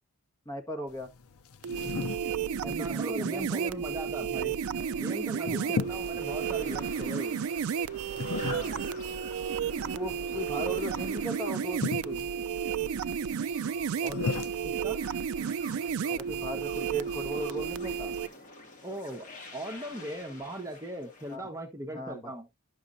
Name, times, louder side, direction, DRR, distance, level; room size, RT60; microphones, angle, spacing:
voice 1, 0.4-1.1 2.6-3.7 5.4-5.9 8.4-8.8 9.8-12.3 16.1-18.1 21.3-21.5 21.9-22.3, equal, 15° left, 1.6 m, -38 dB
sound 1, 0.9-16.7, left 4 dB, 70° left, 0.6 m, -40 dB
sound 2, 1.6-18.3, right 7 dB, 65° right, 0.4 m, -32 dB
voice 2, 2.6-4.5 4.9-7.4 14.0-14.2 14.6-15.0 18.8-22.5, right 1 dB, 15° right, 1.2 m, -39 dB
sound 3, 4.8-21.4, left 2 dB, 35° left, 2.3 m, -49 dB
11.5 x 6.4 x 2.7 m
head